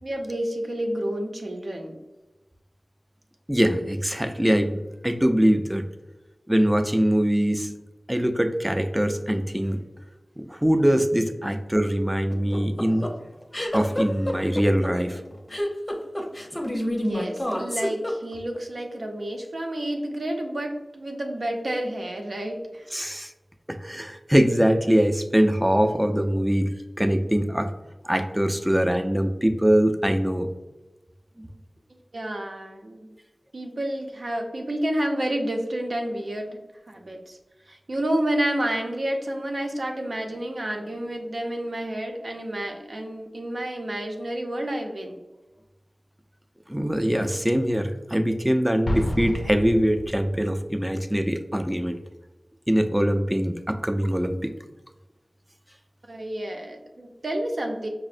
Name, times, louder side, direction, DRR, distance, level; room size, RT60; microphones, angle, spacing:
voice 1, 0.0-2.0 16.8-22.9 31.9-33.1 33.5-36.6 36.9-37.4 37.7-45.2 56.0-57.9, right 1 dB, 65° right, 2 dB, 0.6 m, -30 dB
voice 2, 3.5-5.8 6.5-7.7 8.1-9.8 10.4-13.1 13.7-15.2 22.9-23.3 23.7-26.7 27.0-27.7 28.0-30.5 31.4-31.5 46.7-52.0 52.7-54.5, equal, 10° right, 7 dB, 0.3 m, -23 dB
sound 1, 12.3-18.6, equal, 20° left, 0.6 m, -28 dB
Explosion, 48.9-50.6, left 1 dB, 60° left, 0.4 m, -30 dB
5.4 x 2.0 x 2.5 m, 1.1 s
wide cardioid pair, 75°, 0 cm